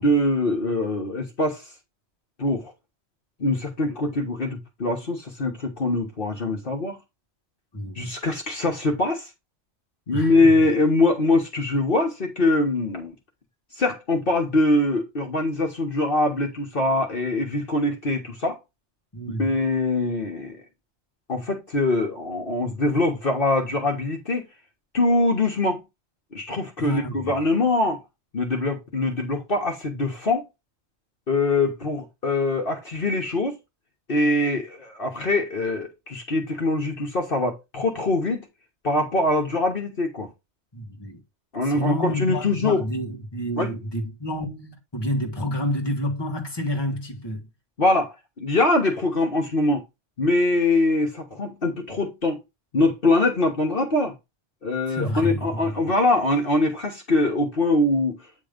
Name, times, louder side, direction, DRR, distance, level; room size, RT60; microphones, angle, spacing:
voice 1, 0.0-1.6 2.4-2.7 3.4-7.0 7.9-9.3 10.1-13.1 13.8-18.6 19.4-20.6 21.3-24.4 24.9-25.8 26.3-28.0 28.3-30.5 31.3-33.6 34.1-38.5 38.8-40.3 41.5-42.8 43.6-43.7 47.8-49.8 50.2-52.4 52.7-54.1 54.6-58.2, left 2 dB, 50° left, 1.4 m, -23 dB
voice 2, 7.7-8.1 10.1-10.6 19.1-19.6 26.8-27.3 40.7-41.2 41.6-47.4 54.9-55.7, equal, 20° left, 1.6 m, -29 dB
8.7 x 3.1 x 5.1 m
omnidirectional pair, 1.2 m